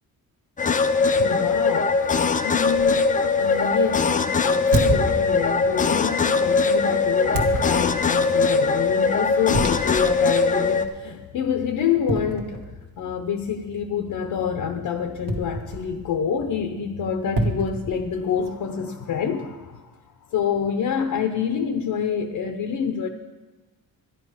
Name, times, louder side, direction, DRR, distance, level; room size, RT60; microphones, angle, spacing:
sound 1, 0.6-10.9, left 4 dB, 20° left, 0.4 m, -21 dB
voice 1, 1.2-12.7 13.0-19.9 20.3-23.1, left 7 dB, 65° left, 6 dB, 0.8 m, -27 dB
sound 2, 2.8-3.0 4.7-5.7 7.3-8.2 9.5-10.2 10.6-10.7 12.1-13.0 15.3-16.1 17.4-18.5, right 1 dB, 70° right, 1.6 m, -28 dB
12.5 x 11.0 x 4.9 m, 1.2 s
wide cardioid pair, 160°, 37 cm